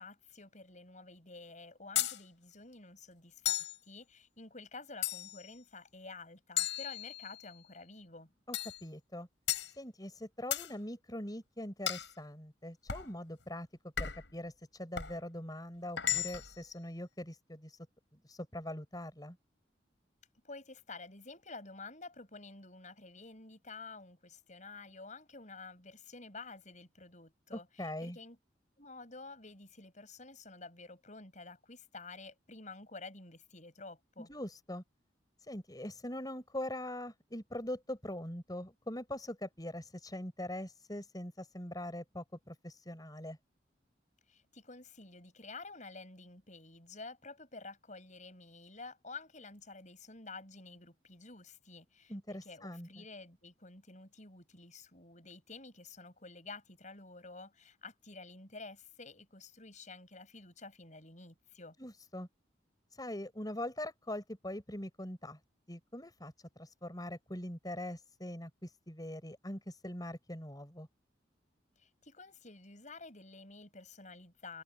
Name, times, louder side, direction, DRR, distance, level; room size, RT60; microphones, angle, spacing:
voice 1, 0.0-8.3 20.4-28.4 28.8-34.3 44.3-61.7 71.8-74.6, left 3 dB, 40° left, 7.7 m, -50 dB
sound 1, 2.0-2.2 3.5-3.8 5.0-5.5 6.6-7.5 8.5-8.8 9.5-9.7 10.5-10.7 11.9-12.1 12.9-13.1 14.0-14.3 15.0-15.2 16.0-16.6, left 11 dB, 80° left, 6.1 m, -35 dB
voice 2, 8.5-9.3 9.8-13.7 14.0-17.8 18.2-19.4 27.8-28.2 34.3-34.8 35.4-43.4 52.1-53.0 61.8-62.3 62.9-65.4 65.7-70.9, left 1 dB, 20° left, 5.6 m, -42 dB
head